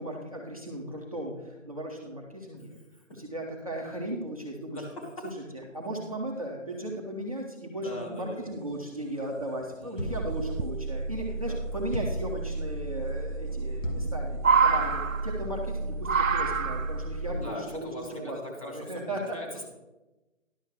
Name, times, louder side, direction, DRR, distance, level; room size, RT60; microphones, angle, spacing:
voice 1, 0.0-2.7 3.2-4.8 5.7-18.4 18.6-19.4, right 1 dB, 25° right, -1 dB, 1.0 m, -36 dB
voice 2, 4.7-5.3 7.7-8.5 9.8-10.4 11.4-11.8 17.3-19.6, left 1 dB, 25° left, -2 dB, 1.6 m, -41 dB
sound 1, 9.1-9.2 9.4-9.5 10.1-10.7 12.2-12.3 13.6-14.1 14.3-15.6 16.0-17.1 18.0-18.1, right 5 dB, 85° right, 0.7 m, -26 dB
sound 2, 10.0-10.4 11.9-12.3 13.8-14.2, equal, 75° left, 1.9 m, -33 dB
sound 3, 10.0-17.3, right 2 dB, ahead, 0.7 m, -34 dB
11.0 x 6.3 x 4.8 m, 1.0 s
figure-of-eight pair, 165°, 39 cm